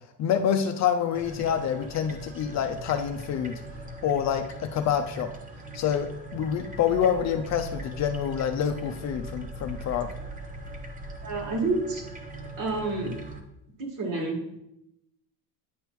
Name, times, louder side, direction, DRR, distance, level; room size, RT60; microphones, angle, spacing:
voice 1, 0.2-3.6 4.0-5.3 5.7-10.1, left 8 dB, 40° left, 6 dB, 0.5 m, -27 dB
sound 1, 1.1-13.4, right 1 dB, 20° right, 0.8 m, -40 dB
voice 2, 11.2-12.0 12.6-13.2 13.8-14.6, right 3 dB, 50° right, 2 dB, 2.0 m, -29 dB
9.3 x 5.1 x 3.1 m, 0.82 s
cardioid pair, 135°, 41 cm